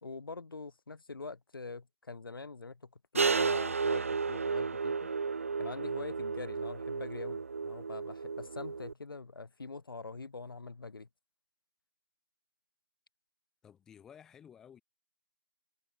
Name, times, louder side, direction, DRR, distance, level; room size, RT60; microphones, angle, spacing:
voice 1, 0.0-5.1 5.6-11.1, left 4 dB, 70° left, 1.0 m, -44 dB
sound 1, 3.1-8.9, right 5 dB, 35° right, 0.3 m, -33 dB
voice 2, 13.6-14.8, left 8 dB, 5° left, 0.8 m, -54 dB
figure-of-eight pair, 165°, 12 cm